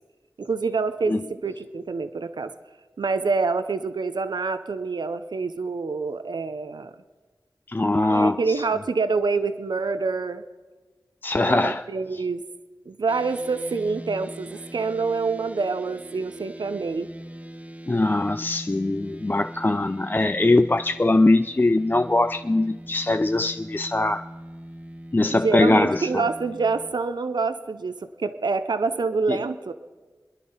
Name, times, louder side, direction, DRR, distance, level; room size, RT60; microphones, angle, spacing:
voice 1, 0.4-2.5 3.0-6.9 8.0-10.4 11.4-12.4 12.9-17.1 25.4-29.7, right 4 dB, 80° right, 11 dB, 0.7 m, -26 dB
voice 2, 7.7-8.5 11.2-11.8 17.9-24.3 25.1-26.2 29.3-29.4, left 2 dB, 25° left, 10 dB, 0.4 m, -21 dB
sound 1, 13.1-26.9, right 1 dB, 20° right, 1.0 m, -41 dB
24.0 x 10.5 x 5.5 m, 1.3 s
cardioid pair, 45°, 7 cm